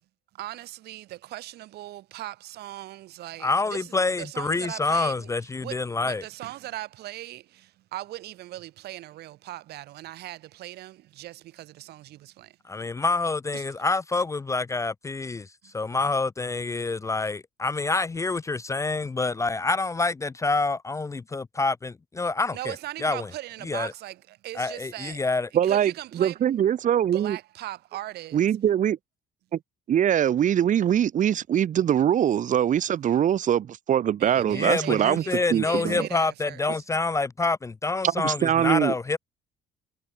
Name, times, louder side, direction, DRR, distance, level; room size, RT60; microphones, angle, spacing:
voice 1, 0.4-3.9 4.2-5.3 5.6-5.8 6.0-12.5 13.5-13.6 22.5-25.2 25.5-26.4 27.1-28.4 34.2-36.6, right 15 dB, 75° right, 2.2 m, -39 dB
voice 2, 3.4-6.3 12.7-23.3 23.6-23.9 24.5-25.5 34.5-39.2, left 3 dB, 20° left, 0.5 m, -27 dB
voice 3, 25.5-27.4 28.3-29.0 29.9-35.2 35.5-36.1 38.0-38.9, right 10 dB, 50° right, 1.3 m, -23 dB
cardioid pair, 110°, 17 cm